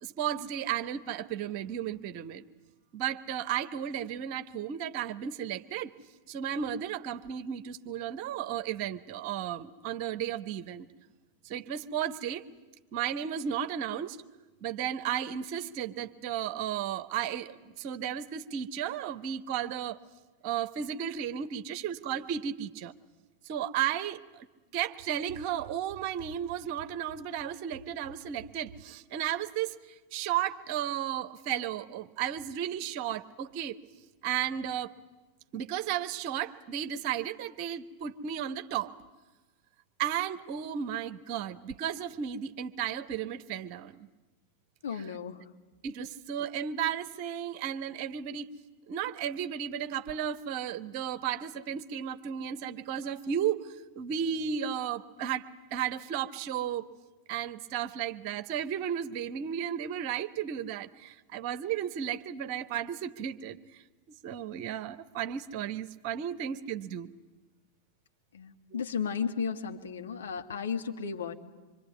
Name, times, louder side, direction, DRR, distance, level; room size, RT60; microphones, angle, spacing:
voice 1, 0.0-2.4 2.9-5.9 6.3-10.9 11.4-12.4 12.9-14.2 14.6-20.0 20.4-22.9 23.4-24.5 24.7-29.8 30.1-33.8 34.2-34.9 35.5-38.9 40.0-44.0 45.8-48.5 48.9-56.9 57.3-63.8 64.1-67.1, right 9 dB, 45° right, 12 dB, 1.1 m, -34 dB
voice 2, 44.8-45.5 68.3-71.3, left 6 dB, 65° left, 5 dB, 1.7 m, -34 dB
25.5 x 24.0 x 9.5 m, 1.2 s
figure-of-eight pair, 90°, 0 cm